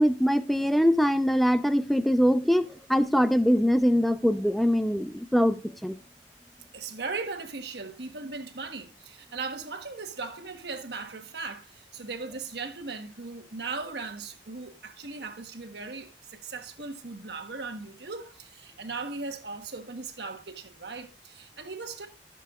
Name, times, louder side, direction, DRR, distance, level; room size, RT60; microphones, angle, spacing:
voice 1, 0.0-5.6 5.8-5.9, equal, ahead, 0.6 m, -23 dB
voice 2, 6.7-22.1, right 4 dB, 65° right, 1.3 m, -38 dB
14.0 x 7.0 x 2.4 m
head